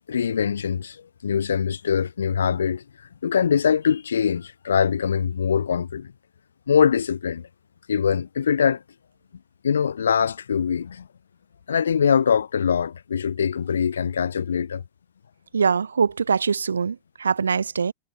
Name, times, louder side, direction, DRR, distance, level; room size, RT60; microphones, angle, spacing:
voice 1, 0.1-2.8 3.2-6.1 6.7-7.5 7.9-8.8 9.6-11.1 11.7-14.8, left 7 dB, 80° left, 7.9 m, -23 dB
voice 2, 15.5-16.9 17.2-17.9, right 6 dB, 85° right, 3.4 m, -22 dB
hypercardioid pair, 105°, 0 cm